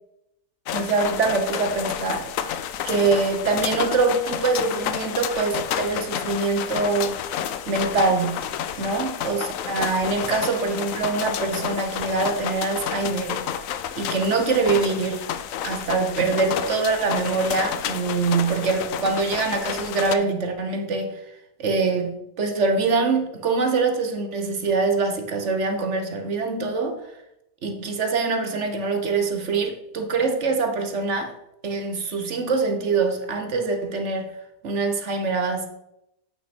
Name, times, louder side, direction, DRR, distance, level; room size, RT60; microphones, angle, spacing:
sound 1, 0.7-20.2, left 9 dB, 70° left, 0.9 m, -30 dB
voice 1, 0.7-2.3 2.8-7.2 7.7-8.5 8.8-13.5 14.0-15.3 15.6-21.2 21.6-27.0 27.6-31.4 31.6-34.3 34.6-35.7, right 4 dB, 55° right, 1.2 m, -24 dB
8.6 x 5.9 x 4.3 m
omnidirectional pair, 1.6 m